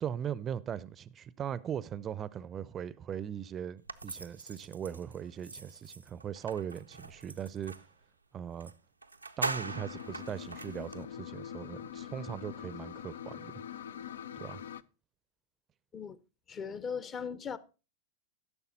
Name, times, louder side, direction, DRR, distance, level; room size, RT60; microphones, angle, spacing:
voice 1, 0.0-7.7 8.3-8.7 9.4-13.6 14.4-14.6, right 9 dB, 25° right, 0.6 m, -39 dB
sound 1, 3.9-7.9 8.6-8.7 9.0-11.0, right 3 dB, 85° right, 0.6 m, -41 dB
sound 2, 9.6-14.8, left 9 dB, 65° left, 0.5 m, -44 dB
voice 2, 16.5-17.6, left 6 dB, 25° left, 0.7 m, -38 dB
14.5 x 7.0 x 4.1 m
figure-of-eight pair, 90°, 0 cm